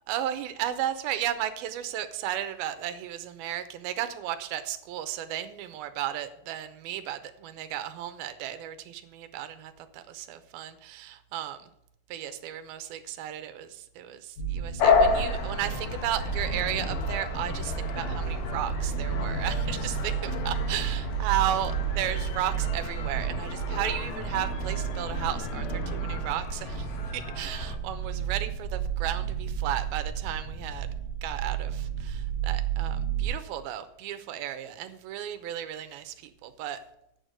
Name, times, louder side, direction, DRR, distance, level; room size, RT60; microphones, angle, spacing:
voice 1, 0.1-11.7 12.1-30.9 31.2-36.8, right 11 dB, 90° right, 10 dB, 2.7 m, -34 dB
sound 1, 14.4-33.3, right 8 dB, 45° left, 4.7 m, -32 dB
sound 2, 14.8-27.8, left 5 dB, 85° left, 3.2 m, -31 dB
8.1 x 7.0 x 7.8 m, 0.78 s
omnidirectional pair, 4.3 m